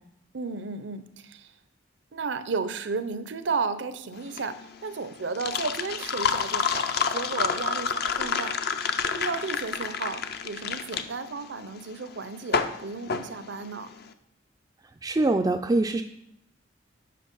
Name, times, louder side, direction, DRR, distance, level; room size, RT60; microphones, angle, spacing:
voice 1, 0.3-1.5 2.1-8.6 9.1-13.9, right 4 dB, 75° right, 12 dB, 0.7 m, -33 dB
sound 1, 4.2-14.0, left 6 dB, 55° left, 0.6 m, -29 dB
Liquid, 5.8-10.4 11.1-11.2, left 2 dB, 80° left, 1.7 m, -48 dB
voice 2, 15.0-16.0, right 2 dB, 20° right, 3 dB, 0.3 m, -23 dB
8.5 x 5.8 x 5.4 m, 0.77 s
head